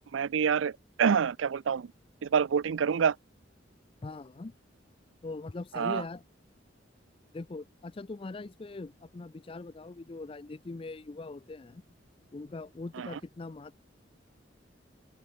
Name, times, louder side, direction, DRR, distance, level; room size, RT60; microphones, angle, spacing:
voice 1, 0.1-1.9 2.2-3.2 5.7-6.0 13.0-13.2, right 7 dB, 85° right, 0.4 m, -27 dB
voice 2, 4.0-4.5 5.2-6.2 7.3-11.8 12.3-13.8, left 3 dB, 30° left, 0.4 m, -41 dB
open air
head